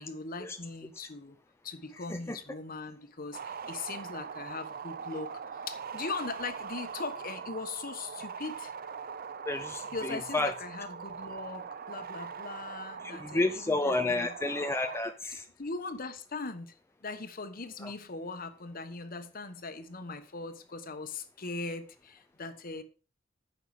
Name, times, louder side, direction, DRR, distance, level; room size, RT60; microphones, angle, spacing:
voice 1, 0.0-1.4 1.6-5.4 5.7-8.7 9.9-14.3 15.6-16.7 17.0-22.8, left 3 dB, 50° left, 1.1 m, -40 dB
hypnotic line, 3.3-15.0, right 6 dB, 50° right, 0.6 m, -42 dB
voice 2, 9.5-10.5 13.2-15.4 17.8-17.9, left 2 dB, 15° left, 0.5 m, -30 dB
9.4 x 6.5 x 4.8 m
head